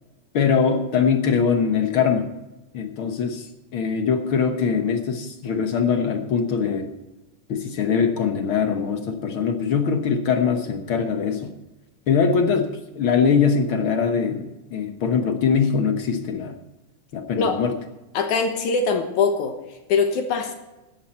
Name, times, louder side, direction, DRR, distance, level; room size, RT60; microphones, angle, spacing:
voice 1, 0.3-2.3 2.7-6.9 7.5-11.5 12.1-12.7 12.9-16.6 17.1-17.7, left 6 dB, 55° left, 6 dB, 1.5 m, -22 dB
voice 2, 18.1-19.6 19.9-20.5, left 5 dB, 70° left, 6 dB, 2.6 m, -22 dB
16.0 x 12.0 x 4.4 m, 1.0 s
omnidirectional pair, 3.6 m